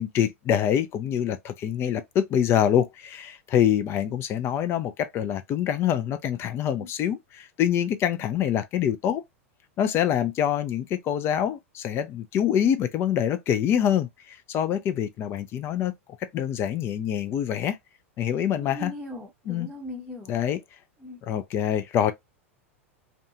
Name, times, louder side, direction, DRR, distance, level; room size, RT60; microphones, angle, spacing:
voice 1, 0.0-9.2 9.8-15.9 16.3-17.8 18.2-18.9 19.5-19.7 20.3-20.6 21.2-22.1, left 9 dB, 35° left, 0.4 m, -25 dB
voice 2, 18.5-20.3 21.0-21.2, left 1 dB, ahead, 0.8 m, -39 dB
2.6 x 2.3 x 2.6 m
figure-of-eight pair, 90°, 7 cm